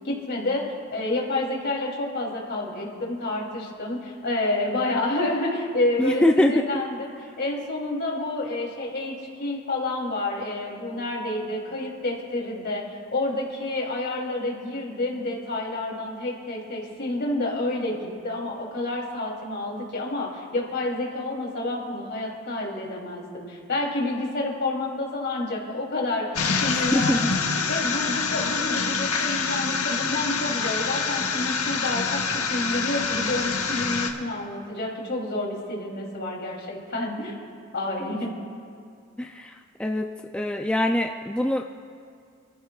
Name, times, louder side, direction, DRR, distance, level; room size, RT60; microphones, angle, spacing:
voice 1, 0.0-0.6 0.9-7.1 7.4-9.1 9.4-12.8 13.1-26.3 26.6-27.3 27.7-37.3 37.7-38.4, left 2 dB, 55° left, -2 dB, 3.2 m, -29 dB
voice 2, 6.0-6.6 26.7-27.3 39.2-40.1 40.3-41.7, left 1 dB, 5° left, 2 dB, 0.4 m, -23 dB
sound 1, 26.3-34.1, left 5 dB, 90° left, 1.3 m, -26 dB
28.0 x 13.5 x 2.4 m, 2.4 s
head